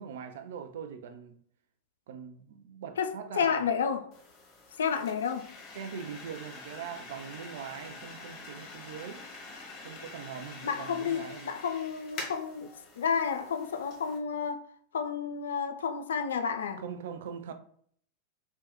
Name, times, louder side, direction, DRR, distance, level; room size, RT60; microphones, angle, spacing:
voice 1, 0.0-1.4 2.1-3.7 5.7-9.2 9.8-11.5 16.8-17.5, right 7 dB, 55° right, 0.3 m, -42 dB
voice 2, 3.3-4.1 4.8-5.5 10.6-12.7 13.0-14.6 14.9-16.8, left 6 dB, 65° left, 0.3 m, -31 dB
sound 1, 4.1-14.2, left 3 dB, 35° left, 0.8 m, -46 dB
2.9 x 2.1 x 3.0 m
figure-of-eight pair, 90°, 0 cm